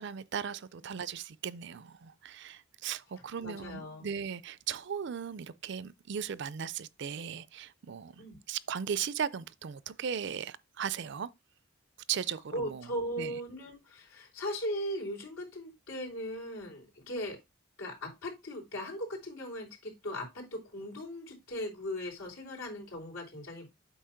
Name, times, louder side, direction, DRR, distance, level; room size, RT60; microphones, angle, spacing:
voice 1, 0.0-11.3 12.1-13.4, right 7 dB, 55° right, 0.4 m, -37 dB
voice 2, 3.4-4.1 8.2-8.4 12.5-17.4 17.8-23.7, equal, 80° left, 3.5 m, -38 dB
8.5 x 2.9 x 5.8 m
head